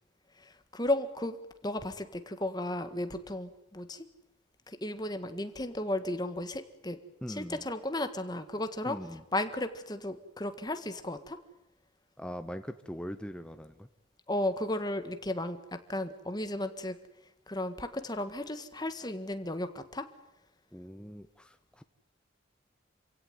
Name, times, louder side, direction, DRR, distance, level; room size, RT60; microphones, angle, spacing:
voice 1, 0.4-1.4 1.6-4.1 4.7-7.0 7.3-9.0 9.3-11.4 14.3-17.0 17.5-20.1, left 1 dB, 20° left, 9 dB, 1.7 m, -34 dB
voice 2, 7.2-7.7 8.8-9.2 12.2-13.9 20.7-21.8, equal, 5° left, 8 dB, 0.8 m, -41 dB
27.5 x 16.5 x 9.5 m, 0.89 s
head